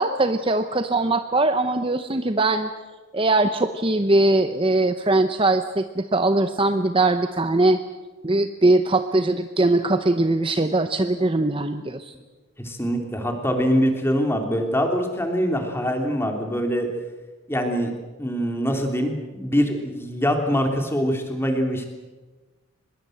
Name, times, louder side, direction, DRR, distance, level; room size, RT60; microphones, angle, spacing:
voice 1, 0.0-2.7 3.1-7.8 8.2-12.1, right 2 dB, 25° right, 9 dB, 0.7 m, -21 dB
voice 2, 12.6-16.9 17.5-17.9 18.2-21.9, equal, 10° left, 4 dB, 3.0 m, -23 dB
24.5 x 21.5 x 7.9 m, 1.3 s
head